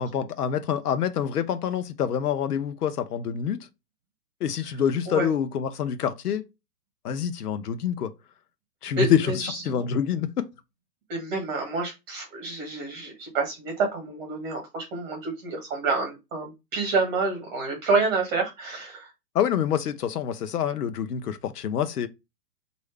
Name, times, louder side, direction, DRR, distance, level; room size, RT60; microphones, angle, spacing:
voice 1, 0.0-3.7 4.4-6.4 7.0-8.1 8.8-10.5 19.3-22.1, left 8 dB, 70° left, 0.7 m, -26 dB
voice 2, 9.0-9.9 11.1-19.1, right 3 dB, 30° right, 1.2 m, -28 dB
3.1 x 2.7 x 4.4 m
figure-of-eight pair, 125°, 48 cm